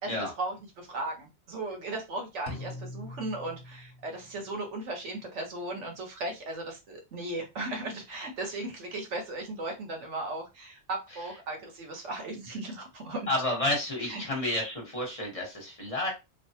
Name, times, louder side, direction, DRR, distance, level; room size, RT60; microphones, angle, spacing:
voice 1, 0.0-13.3 14.1-14.2, right 2 dB, 90° right, 2 dB, 1.2 m, -36 dB
sound 1, 2.5-4.4, left 2 dB, 65° left, 0.9 m, -42 dB
voice 2, 13.3-16.1, left 1 dB, 35° left, -1 dB, 1.0 m, -30 dB
3.1 x 2.1 x 2.7 m, 0.24 s
omnidirectional pair, 1.2 m